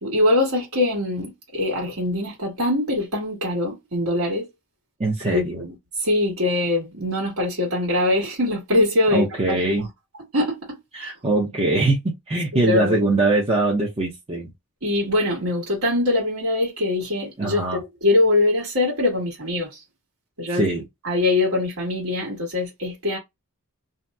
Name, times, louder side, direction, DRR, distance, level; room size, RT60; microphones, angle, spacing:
voice 1, 0.0-4.5 5.3-9.3 9.6-9.9 10.3-11.1 12.6-13.0 14.8-19.8 20.4-20.7 21.0-23.2, left 2 dB, 70° right, 1.3 m, -23 dB
voice 2, 5.0-5.6 9.1-9.9 10.9-14.5 17.4-17.8 20.5-20.8, right 2 dB, 30° right, 0.7 m, -22 dB
2.8 x 2.1 x 3.4 m
head